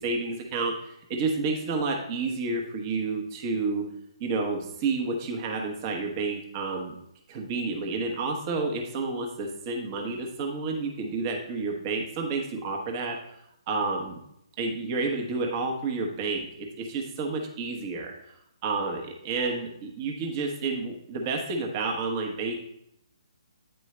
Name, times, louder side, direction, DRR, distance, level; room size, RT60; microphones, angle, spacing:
voice 1, 0.0-3.8 4.2-6.9 7.3-13.4 13.7-14.2 14.6-18.1 18.6-22.6, right 3 dB, 30° right, 1 dB, 1.1 m, -30 dB
9.2 x 4.5 x 3.2 m, 0.77 s
hypercardioid pair, 145°, 3 cm